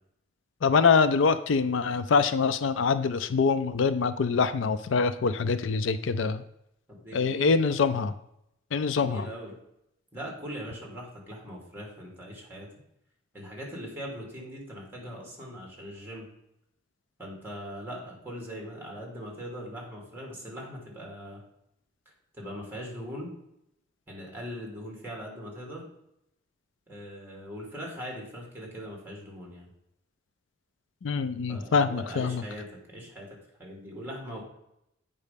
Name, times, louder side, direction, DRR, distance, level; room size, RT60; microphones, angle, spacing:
voice 1, 0.6-6.4 7.1-8.1 8.7-9.3 31.0-32.4, left 5 dB, 70° left, 12 dB, 0.4 m, -24 dB
voice 2, 6.9-7.6 8.9-9.5 10.1-12.7 13.3-16.3 17.2-21.4 22.3-23.3 24.1-25.9 26.9-29.7 31.5-33.3 33.6-34.4, equal, 10° right, -1 dB, 2.7 m, -40 dB
8.2 x 5.4 x 5.2 m, 0.79 s
head